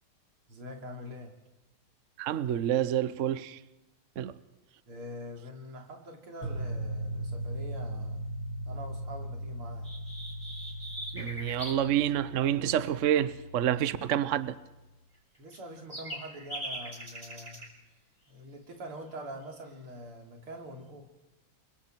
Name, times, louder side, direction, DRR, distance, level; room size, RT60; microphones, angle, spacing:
voice 1, 0.5-1.4 4.9-8.2 8.7-9.9 15.4-17.6 18.3-21.1, equal, 85° right, 3.9 m, -44 dB
voice 2, 2.2-3.6 4.2-4.4 11.1-14.6, right 11 dB, 65° right, 0.7 m, -28 dB
sound 1, 6.4-14.5, right 1 dB, 70° left, 3.8 m, -39 dB
sound 2, 9.8-11.8 15.4-17.7, equal, 15° right, 5.1 m, -41 dB
28.0 x 23.0 x 4.6 m
omnidirectional pair, 2.4 m